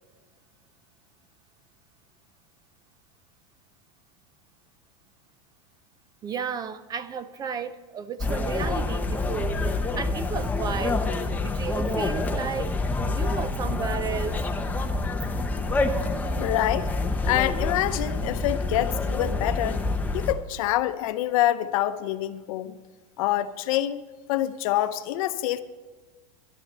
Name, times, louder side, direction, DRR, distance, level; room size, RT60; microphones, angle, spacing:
voice 1, 6.2-9.6 10.0-11.0 11.4-12.7 13.1-14.4, right 6 dB, 20° right, 14 dB, 0.4 m, -33 dB
sound 1, 8.2-20.3, left 2 dB, 10° left, 0.8 m, -27 dB
voice 2, 16.4-16.9 17.2-19.8 20.1-22.8 23.2-24.0 24.3-25.6, left 13 dB, 65° left, 12 dB, 0.7 m, -26 dB
11.5 x 10.5 x 5.4 m, 1.4 s
supercardioid pair, 140°, 19 cm